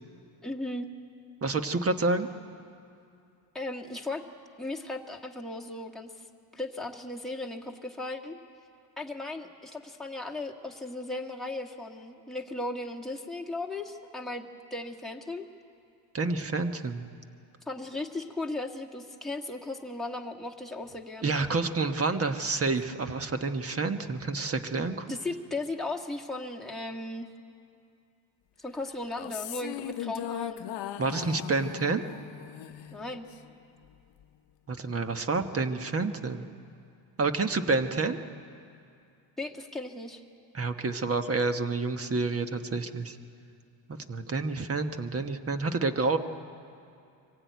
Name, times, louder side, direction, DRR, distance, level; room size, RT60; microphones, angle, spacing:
voice 1, 0.4-0.9 3.5-4.2 4.6-6.3 6.5-8.4 9.0-15.5 17.7-21.3 24.7-27.3 28.6-30.6 32.9-33.3 39.4-40.2, left 2 dB, ahead, -1 dB, 1.6 m, -36 dB
voice 2, 1.4-2.3 16.1-17.1 21.2-25.1 31.0-32.0 34.7-36.5 37.2-38.2 40.5-43.2 43.9-46.2, right 3 dB, 30° right, 8 dB, 1.3 m, -29 dB
sound 1, 29.0-33.5, left 11 dB, 65° left, 0.9 m, -38 dB
24.0 x 16.0 x 9.4 m, 2.5 s
cardioid pair, 95°, 45 cm